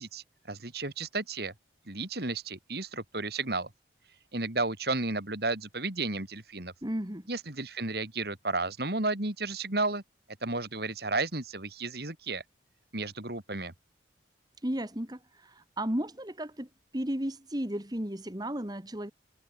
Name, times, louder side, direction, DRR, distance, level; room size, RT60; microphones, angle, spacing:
voice 1, 0.0-1.5 1.9-3.7 4.3-6.7 7.3-10.0 10.4-12.4 12.9-13.7, right 3 dB, 60° right, 3.0 m, -33 dB
voice 2, 6.8-7.3 14.6-19.1, right 1 dB, 20° right, 2.2 m, -34 dB
head